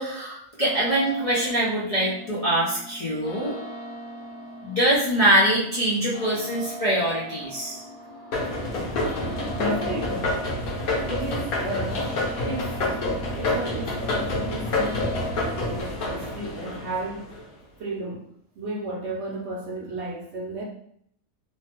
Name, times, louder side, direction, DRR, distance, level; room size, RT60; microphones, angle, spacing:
voice 1, 0.0-3.6 4.6-7.8, right 1 dB, 40° left, -8 dB, 0.5 m, -23 dB
sound 1, 0.6-15.8, right 1 dB, 60° left, 1.3 m, -40 dB
sound 2, 8.3-17.4, left 2 dB, 90° left, 1.3 m, -28 dB
voice 2, 9.5-10.3 11.1-12.1 12.4-15.2 15.7-17.3 17.8-18.2 18.6-20.6, right 1 dB, 60° right, -3 dB, 0.8 m, -33 dB
3.1 x 2.2 x 2.9 m, 0.66 s
omnidirectional pair, 1.5 m